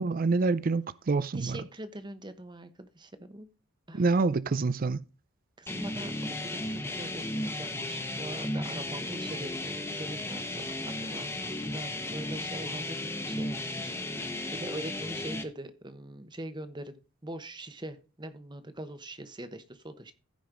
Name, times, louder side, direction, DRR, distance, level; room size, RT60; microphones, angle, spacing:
voice 1, 0.0-1.6 3.9-5.0, right 3 dB, 40° right, 0.4 m, -26 dB
voice 2, 1.3-3.5 3.9-4.2 5.6-6.1 6.4-20.1, right 1 dB, 20° right, 1.0 m, -42 dB
sound 1, 5.7-15.4, left 1 dB, 10° left, 1.1 m, -35 dB
15.5 x 5.2 x 3.8 m
head